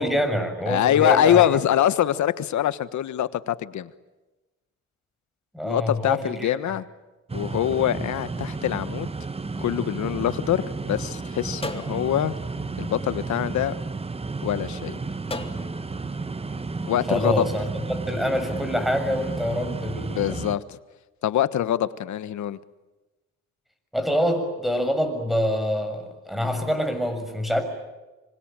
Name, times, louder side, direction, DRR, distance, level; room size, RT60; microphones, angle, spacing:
voice 1, 0.0-1.5 5.5-6.6 7.8-8.0 17.1-17.6 17.9-20.3 23.9-27.6, equal, ahead, 7 dB, 6.8 m, -26 dB
voice 2, 0.7-3.9 5.6-6.8 7.3-9.1 9.6-12.3 12.8-13.7 14.4-15.0 16.8-17.4 20.1-20.8 21.2-22.6, left 11 dB, 70° left, 14 dB, 1.4 m, -24 dB
sound 1, 7.3-20.6, right 3 dB, 20° right, 1.1 m, -32 dB
sound 2, 9.5-10.9 11.6-14.2 15.3-16.7, left 2 dB, 20° left, 2.5 m, -41 dB
25.5 x 25.0 x 9.1 m, 1.1 s
cardioid pair, 90°, 30 cm